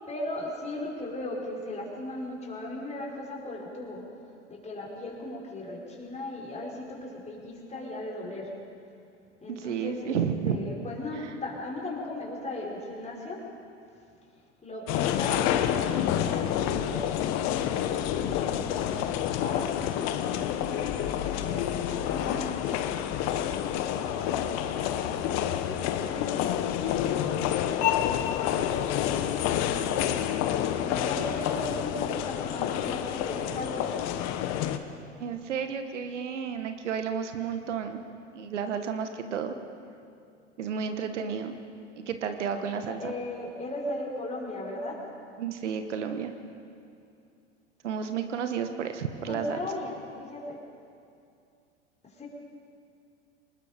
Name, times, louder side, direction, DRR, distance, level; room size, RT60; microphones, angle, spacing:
voice 1, 0.1-4.0 4.5-8.5 9.4-10.2 10.4-13.4 14.6-17.1 17.7-18.0 18.3-19.7 20.0-22.7 23.2-30.2 30.8-34.0 42.9-45.0 49.3-50.6 52.0-52.3, left 2 dB, 20° left, -2 dB, 5.0 m, -38 dB
voice 2, 9.5-10.6 35.2-38.0 38.3-39.6 40.6-41.5 41.9-43.1 45.4-46.3 47.8-49.6, right 7 dB, 70° right, 7 dB, 1.5 m, -32 dB
sound 1, 14.9-34.8, left 10 dB, 45° left, 1.3 m, -28 dB
25.0 x 20.0 x 5.2 m, 2.5 s
figure-of-eight pair, 85°, 37 cm